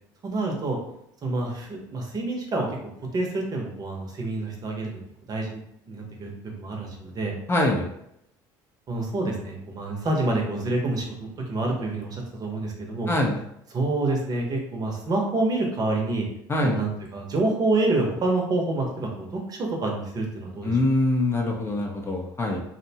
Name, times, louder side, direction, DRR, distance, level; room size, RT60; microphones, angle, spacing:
voice 1, 0.2-0.8 1.2-2.7 3.1-5.0 5.3-5.6 5.9-7.4 8.9-13.1 13.7-16.2 16.6-20.8, right 2 dB, 40° right, 0 dB, 0.7 m, -27 dB
voice 2, 7.5-7.9 13.1-13.4 16.5-16.8 20.6-22.6, left 1 dB, 25° left, 0 dB, 0.5 m, -24 dB
2.6 x 2.1 x 2.7 m, 0.78 s
supercardioid pair, 100°, 10 cm